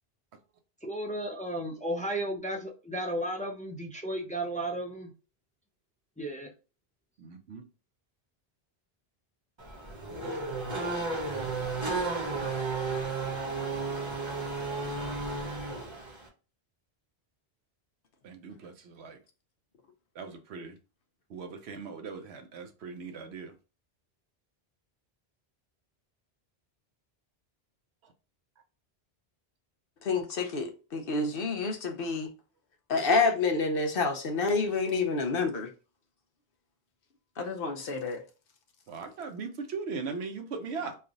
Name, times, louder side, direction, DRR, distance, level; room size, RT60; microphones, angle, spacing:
voice 1, 0.8-5.1 6.2-6.5, right 1 dB, 10° left, 0.4 m, -34 dB
voice 2, 7.2-7.7 14.9-15.2 18.2-19.2 20.1-20.8 21.3-23.5 28.0-28.1 38.9-41.0, right 4 dB, 85° right, 1.0 m, -39 dB
Race car auto racing / Accelerating revving vroom, 9.6-16.3, right 3 dB, 30° right, 0.9 m, -33 dB
voice 3, 30.0-32.3 32.9-35.7 37.4-38.2, left 4 dB, 65° left, 0.9 m, -28 dB
3.3 x 2.4 x 3.8 m
omnidirectional pair, 1.1 m